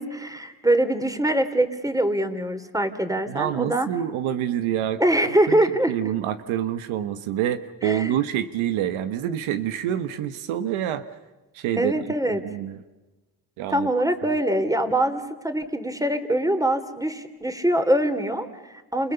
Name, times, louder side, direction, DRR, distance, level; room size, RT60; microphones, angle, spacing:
voice 1, 0.0-3.9 5.0-5.9 7.8-8.2 11.8-12.4 13.7-19.1, right 1 dB, 5° right, 9 dB, 3.2 m, -23 dB
voice 2, 3.3-5.0 5.5-5.6 5.9-11.0 11.5-12.0 12.3-12.8 13.6-13.9, right 11 dB, 80° right, 11 dB, 1.3 m, -27 dB
29.0 x 28.5 x 6.9 m, 1.1 s
supercardioid pair, 60°, 47 cm